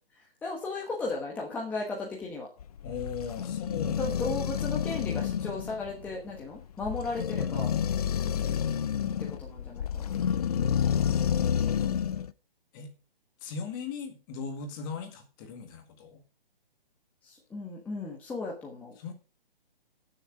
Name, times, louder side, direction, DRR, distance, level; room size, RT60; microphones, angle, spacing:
voice 1, 0.1-2.5 4.0-7.7 9.0-10.2 17.2-19.0, left 3 dB, 5° left, -2 dB, 1.2 m, -36 dB
sound 1, 2.6-12.3, left 8 dB, 40° left, 0.5 m, -29 dB
voice 2, 2.8-4.1 8.0-8.8 10.7-11.3 11.8-11.9 12.7-12.9 13.4-16.2 19.0-19.1, left 6 dB, 20° left, 6 dB, 1.8 m, -39 dB
15.5 x 6.7 x 5.0 m, 0.34 s
hypercardioid pair, 160°, 29 cm